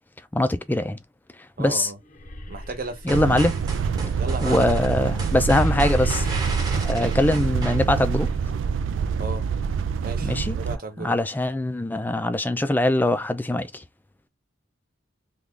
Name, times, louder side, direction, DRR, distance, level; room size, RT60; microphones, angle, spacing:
voice 1, 0.3-1.0 1.6-1.9 3.0-3.6 4.4-6.3 6.8-8.3 10.2-10.6 11.0-13.8, left 1 dB, 10° left, 0.3 m, -22 dB
voice 2, 1.6-2.0 2.5-3.2 4.2-4.7 7.0-7.2 9.2-9.4 10.0-11.2, right 2 dB, 50° right, 0.9 m, -34 dB
sound 1, 2.0-10.2, left 1 dB, 45° left, 0.6 m, -36 dB
sound 2, 3.1-8.3, right 2 dB, 20° right, 1.0 m, -35 dB
sound 3, 3.1-10.8, right 6 dB, 85° right, 0.3 m, -26 dB
3.3 x 2.3 x 3.6 m
head